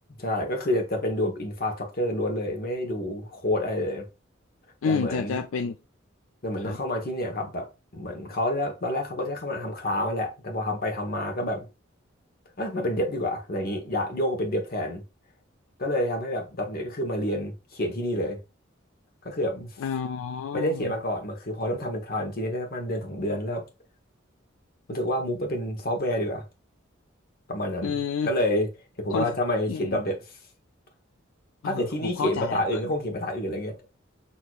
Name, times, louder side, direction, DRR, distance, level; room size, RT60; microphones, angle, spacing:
voice 1, 0.2-4.1 4.8-5.4 6.4-11.6 12.6-15.0 15.8-18.4 19.2-19.7 20.5-23.7 24.9-26.4 27.5-27.9 28.2-28.7 29.0-30.2 31.6-33.8, left 1 dB, 50° left, 1.0 m, -28 dB
voice 2, 4.8-5.8 6.6-6.8 19.8-20.9 27.8-28.3 29.1-29.3 29.7-30.0 31.6-32.8, left 5 dB, 80° left, 0.4 m, -29 dB
6.3 x 2.8 x 2.3 m
head